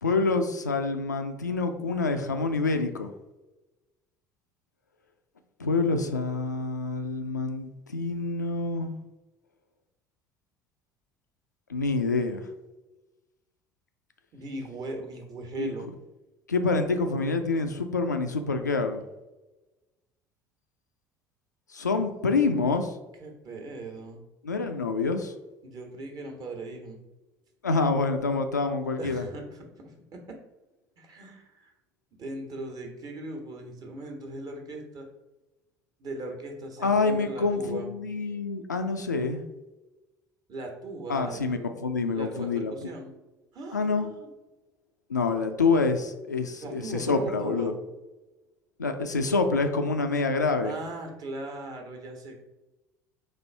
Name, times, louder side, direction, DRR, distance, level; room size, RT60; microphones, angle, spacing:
voice 1, 0.0-3.1 5.6-8.9 11.7-12.5 15.6-15.7 16.5-19.0 21.7-22.9 24.4-25.3 27.6-29.3 36.8-39.4 41.1-42.7 43.7-44.1 45.1-47.7 48.8-50.8, left 3 dB, 90° left, 7 dB, 0.4 m, -27 dB
voice 2, 14.3-15.9 23.2-24.2 25.6-27.0 29.0-30.4 31.0-31.7 32.1-35.1 36.0-37.9 40.5-41.4 42.1-43.1 43.5-44.3 46.6-47.7 50.6-52.5, right 2 dB, 45° right, 2 dB, 1.2 m, -38 dB
4.3 x 2.6 x 4.4 m, 1.1 s
figure-of-eight pair, 65°, 9 cm